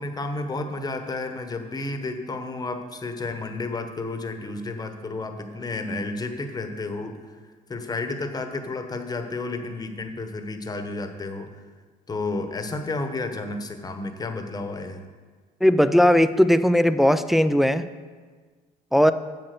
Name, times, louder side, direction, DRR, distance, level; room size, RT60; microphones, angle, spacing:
voice 1, 0.0-7.4 7.7-11.5 12.1-15.0, left 3 dB, 25° left, 6 dB, 1.0 m, -31 dB
voice 2, 15.6-17.9 18.9-19.1, equal, ahead, 11 dB, 0.3 m, -18 dB
7.6 x 7.4 x 6.6 m, 1.5 s
cardioid pair, 110°, 17 cm